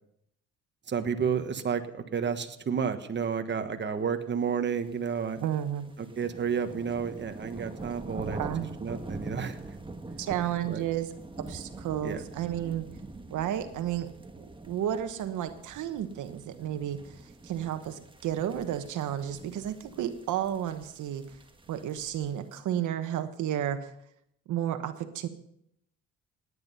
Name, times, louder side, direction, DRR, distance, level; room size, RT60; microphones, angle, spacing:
voice 1, 0.9-5.4 6.0-8.4 8.8-9.6 10.7-10.8 12.0-12.2, right 6 dB, 35° right, 7 dB, 1.4 m, -31 dB
sound 1, 4.9-22.5, right 2 dB, 15° right, 1.4 m, -44 dB
voice 2, 5.4-5.9 8.4-8.7 10.2-11.1 11.4-12.9 13.3-14.1 14.7-21.2 21.7-23.9 24.5-25.3, right 11 dB, 80° right, 9 dB, 1.2 m, -32 dB
17.5 x 9.8 x 5.7 m, 0.74 s
cardioid pair, 90°, 30 cm